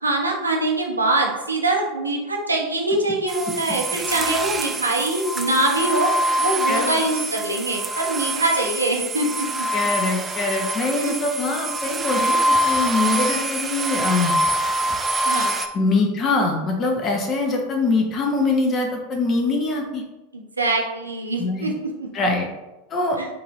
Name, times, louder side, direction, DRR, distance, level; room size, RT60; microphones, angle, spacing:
voice 1, 0.0-6.1 6.4-9.5 11.0-11.1 15.2-15.5 20.3-22.1 23.2-23.3, right 2 dB, 90° right, 0 dB, 0.7 m, -23 dB
sound 1, 3.3-15.7, right 1 dB, 20° right, 0.4 m, -25 dB
voice 2, 6.7-7.0 9.7-14.3 15.7-20.0 21.4-21.7 22.1-22.5 22.9-23.2, left 3 dB, 35° left, 2 dB, 0.8 m, -23 dB
5.3 x 2.7 x 2.9 m, 1.0 s
figure-of-eight pair, 85°, 0 cm